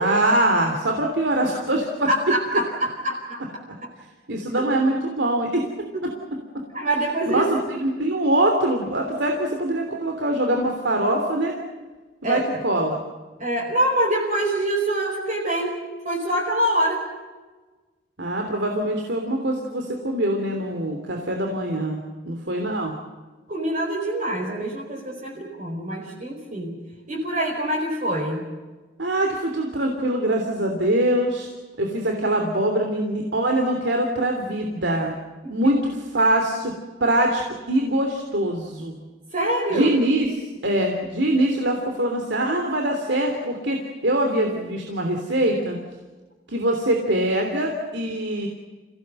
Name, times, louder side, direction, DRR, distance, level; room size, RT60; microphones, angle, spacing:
voice 1, 0.0-2.1 4.3-5.7 6.0-6.4 7.3-11.5 12.2-13.0 18.2-22.0 22.2-22.9 29.0-31.5 31.8-35.1 35.5-36.7 37.0-39.0 39.7-45.8 46.5-48.5, right 1 dB, 80° right, 2 dB, 3.2 m, -23 dB
voice 2, 2.1-3.4 5.9-6.0 6.7-7.5 12.2-12.4 13.4-15.8 16.0-17.0 23.5-26.8 27.1-28.5 35.4-35.5 39.3-39.9, right 1 dB, 45° right, -2 dB, 4.7 m, -25 dB
29.0 x 17.0 x 7.9 m, 1.3 s
head